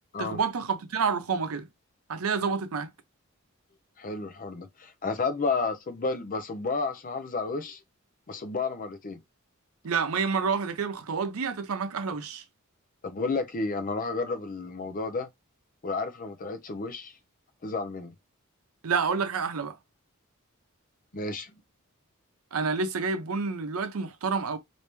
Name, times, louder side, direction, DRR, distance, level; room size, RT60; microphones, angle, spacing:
voice 1, 0.2-1.7 2.1-2.9 9.8-12.4 18.8-19.8 22.5-24.6, right 5 dB, 85° right, 0.6 m, -28 dB
voice 2, 4.0-7.8 8.3-9.2 13.0-15.3 15.8-17.1 17.6-18.1 21.1-21.5, left 3 dB, 40° left, 0.5 m, -31 dB
3.3 x 2.7 x 3.0 m
head